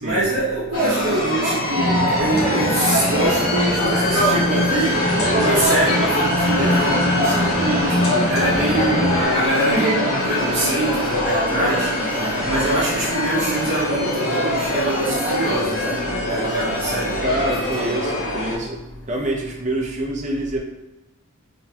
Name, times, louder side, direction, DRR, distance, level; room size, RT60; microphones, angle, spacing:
voice 1, 0.0-4.9 5.3-11.9 12.4-16.0 16.3-17.2 17.7-17.9, right 1 dB, 55° right, -9 dB, 1.0 m, -24 dB
sound 1, 0.7-18.6, left 1 dB, 85° left, 1.4 m, -23 dB
sound 2, 1.8-9.2, left 1 dB, 5° left, 0.8 m, -24 dB
sound 3, 10.1-17.5, left 1 dB, 65° left, 0.9 m, -38 dB
voice 2, 12.1-12.5 17.2-18.8 19.1-20.6, right 1 dB, 35° right, -1 dB, 0.7 m, -26 dB
3.8 x 3.5 x 2.9 m, 1.0 s
head